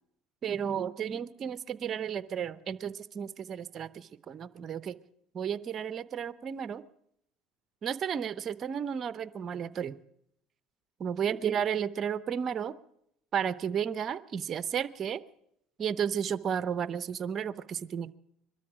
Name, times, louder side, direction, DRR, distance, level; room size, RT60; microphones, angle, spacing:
voice 1, 0.4-5.0 5.3-6.8 7.8-10.0 11.0-12.7 13.3-15.2 15.8-18.1, right 8 dB, 45° right, 15 dB, 0.7 m, -33 dB
22.0 x 13.0 x 5.0 m, 0.75 s
hypercardioid pair, 80°, 0 cm